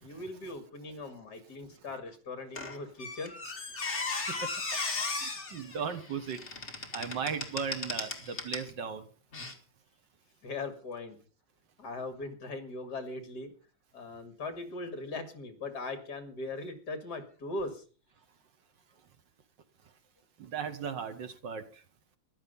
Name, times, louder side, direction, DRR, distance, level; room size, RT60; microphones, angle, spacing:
voice 1, 0.0-3.3 10.4-11.2 11.8-13.5 13.9-17.8, left 2 dB, 60° left, 2.6 m, -39 dB
Squeak, 2.6-8.7 9.3-9.5, left 3 dB, 35° left, 2.2 m, -36 dB
voice 2, 5.2-6.4 6.9-9.0 20.5-21.6, right 6 dB, 70° right, 2.0 m, -36 dB
15.0 x 11.0 x 5.4 m
omnidirectional pair, 2.1 m